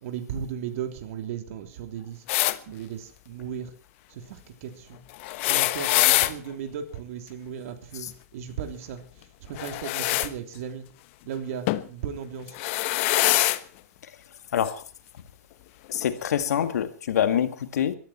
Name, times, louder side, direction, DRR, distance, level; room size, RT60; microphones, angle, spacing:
voice 1, 0.0-2.2 2.7-3.7 4.1-5.0 5.5-9.0 9.4-10.9 11.2-12.6, right 8 dB, 60° right, 3.3 m, -36 dB
sound 1, 2.3-2.6 5.2-6.3 9.5-10.3 11.7-11.9 12.5-13.6 14.6-14.7 15.9-16.0, left 17 dB, 50° left, 1.1 m, -23 dB
voice 2, 14.5-14.8 15.9-18.0, left 9 dB, 75° left, 2.0 m, -25 dB
22.5 x 13.0 x 4.4 m
hypercardioid pair, 125°, 9 cm